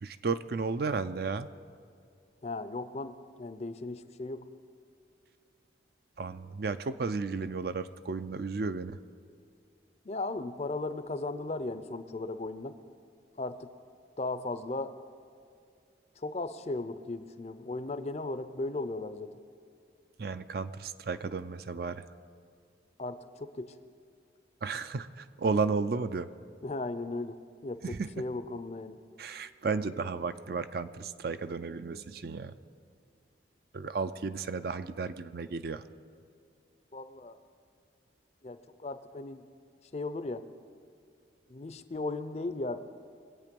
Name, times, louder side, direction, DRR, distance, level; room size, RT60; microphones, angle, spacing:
voice 1, 0.0-1.5 6.2-9.0 20.2-22.0 24.6-26.3 27.8-28.1 29.2-32.5 33.7-35.8, right 4 dB, 50° right, 12 dB, 0.4 m, -33 dB
voice 2, 2.4-4.5 10.0-12.8 13.4-13.7 14.2-14.9 16.2-19.3 23.0-23.7 26.6-27.4 27.6-29.0 36.9-37.4 38.4-39.4 39.9-40.4 41.5-42.8, left 2 dB, 35° left, 11 dB, 0.5 m, -36 dB
22.5 x 8.5 x 5.3 m, 2.3 s
head